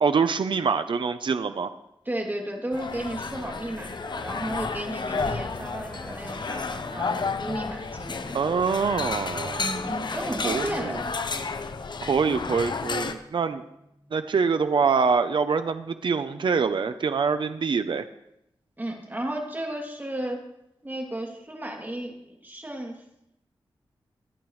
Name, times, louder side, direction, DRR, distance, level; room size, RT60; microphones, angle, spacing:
voice 1, 0.0-1.7 8.3-9.7 10.4-11.0 12.0-13.6 14.1-18.1, right 5 dB, 65° right, 10 dB, 0.7 m, -25 dB
voice 2, 2.0-8.4 9.6-11.0 18.8-20.4 20.8-22.1 22.4-23.0, right 1 dB, 20° right, 1 dB, 2.8 m, -33 dB
sound 1, 2.7-13.1, left 4 dB, 55° left, 0.9 m, -32 dB
sound 2, 5.5-16.5, left 1 dB, 20° left, 5.4 m, -51 dB
23.5 x 8.8 x 3.2 m, 0.82 s
wide cardioid pair, 80°, 9 cm